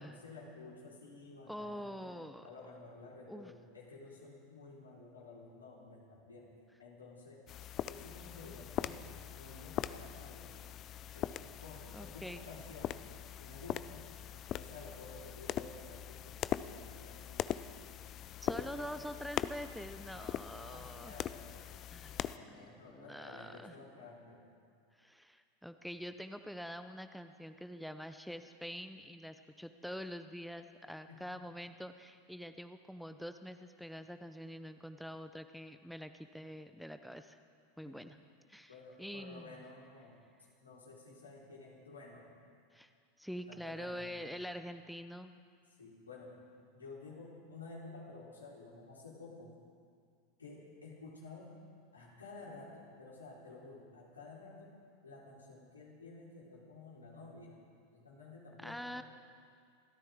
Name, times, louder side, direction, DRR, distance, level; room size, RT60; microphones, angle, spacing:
voice 1, 0.0-2.1 2.4-6.5 6.8-7.4 7.8-10.6 11.1-13.0 13.4-14.1 14.5-17.7 18.4-19.2 20.1-21.6 22.1-24.5 31.1-31.2 37.8-38.0 38.7-40.2 40.6-42.3 43.5-44.3 45.7-46.3 46.7-49.5 50.4-51.5 51.9-54.7 55.0-57.6 57.9-59.0, left 3 dB, 85° left, -5 dB, 4.3 m, -52 dB
voice 2, 1.5-2.5 3.3-3.5 11.9-12.4 18.4-21.1 21.9-22.2 22.5-22.6 22.9-23.7 25.0-37.4 37.8-38.2 38.5-38.7 39.0-39.5 42.7-42.9 43.2-45.4 58.6-59.0, equal, ahead, 9 dB, 0.7 m, -45 dB
sound 1, 7.5-22.4, left 11 dB, 40° left, 0.5 m, -41 dB
28.0 x 13.5 x 3.7 m, 2.2 s
figure-of-eight pair, 85°, 0 cm